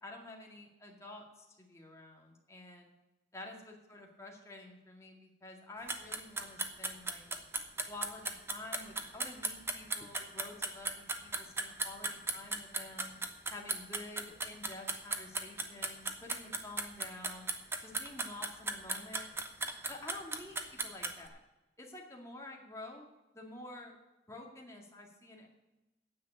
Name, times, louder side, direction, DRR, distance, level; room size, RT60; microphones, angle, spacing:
voice 1, 0.0-2.9 3.3-7.2 7.9-13.1 13.5-17.5 17.8-19.3 19.9-21.4 21.8-23.9 24.3-25.5, left 2 dB, 15° left, 0 dB, 2.1 m, -49 dB
sound 1, 5.9-21.3, right 3 dB, 15° right, 0.9 m, -36 dB
9.5 x 7.6 x 8.5 m, 1.0 s
head